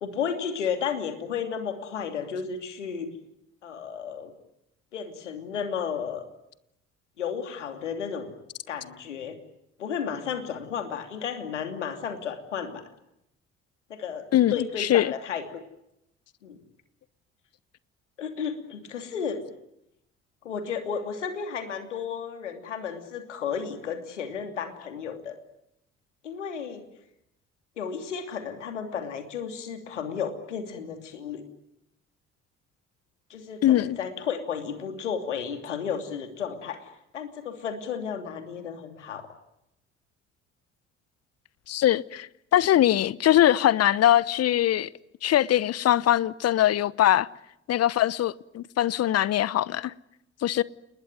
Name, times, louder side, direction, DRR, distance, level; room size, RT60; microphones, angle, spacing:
voice 1, 0.0-3.1 3.6-4.3 4.9-6.2 7.2-8.3 8.7-9.4 9.8-12.8 13.9-14.2 14.5-15.4 16.4-16.6 18.2-19.4 20.4-25.4 26.2-26.8 27.8-31.4 33.3-39.3, left 7 dB, 80° left, 2.9 m, -33 dB
voice 2, 14.3-15.1 33.6-34.0 41.7-44.9 45.2-47.3 47.7-49.9 50.4-50.6, left 12 dB, 45° left, 1.0 m, -22 dB
29.5 x 20.5 x 9.4 m
figure-of-eight pair, 50°, 35 cm